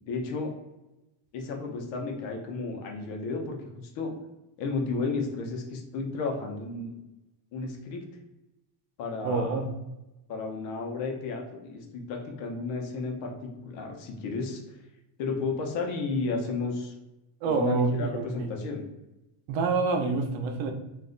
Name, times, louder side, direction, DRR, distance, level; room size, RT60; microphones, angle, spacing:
voice 1, 0.1-0.5 1.3-4.1 4.6-6.9 7.5-8.0 9.0-9.6 10.3-14.6 15.2-16.9 17.5-18.8, left 3 dB, 90° left, 2 dB, 0.8 m, -33 dB
voice 2, 9.2-9.7 17.4-18.5 19.5-20.7, right 4 dB, 90° right, 4 dB, 0.7 m, -27 dB
2.5 x 2.1 x 3.7 m, 0.98 s
cardioid pair, 165°, 44 cm